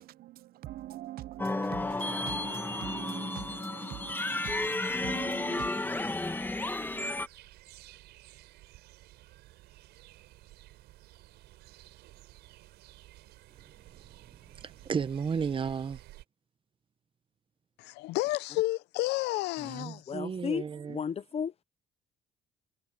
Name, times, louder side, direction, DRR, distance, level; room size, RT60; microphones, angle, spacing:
voice 1, 0.6-4.4 5.0-5.7, right 14 dB, 65° right, 0.6 m, -43 dB
sound 1, 1.4-7.3, left 2 dB, 10° left, 2.0 m, -32 dB
sound 2, 5.7-16.2, right 17 dB, 85° right, 7.1 m, -54 dB
voice 2, 14.6-16.0 19.6-21.0, right 6 dB, 30° right, 0.9 m, -33 dB
voice 3, 17.8-20.0, left 19 dB, 90° left, 0.7 m, -31 dB
voice 4, 20.1-21.6, left 7 dB, 35° left, 0.8 m, -34 dB
cardioid pair, 110°, 17 cm